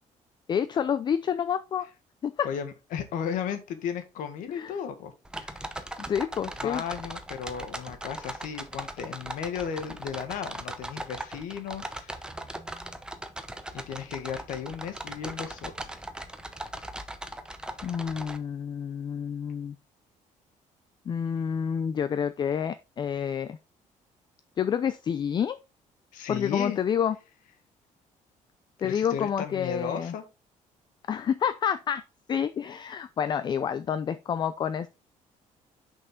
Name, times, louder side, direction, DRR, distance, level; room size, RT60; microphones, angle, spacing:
voice 1, 0.5-1.9 2.2-2.5 4.5-4.7 6.1-6.8 17.8-19.7 21.1-23.6 24.6-25.6 26.3-27.2 28.8-30.1 31.1-32.0 32.3-34.9, left 8 dB, 35° left, 0.4 m, -28 dB
voice 2, 2.4-5.7 6.6-12.2 13.7-15.7 26.1-26.8 28.8-30.2, left 7 dB, 85° left, 1.5 m, -35 dB
sound 1, 5.2-18.4, right 1 dB, 5° right, 0.7 m, -39 dB
6.1 x 5.6 x 3.7 m
cardioid pair, 140°, 13 cm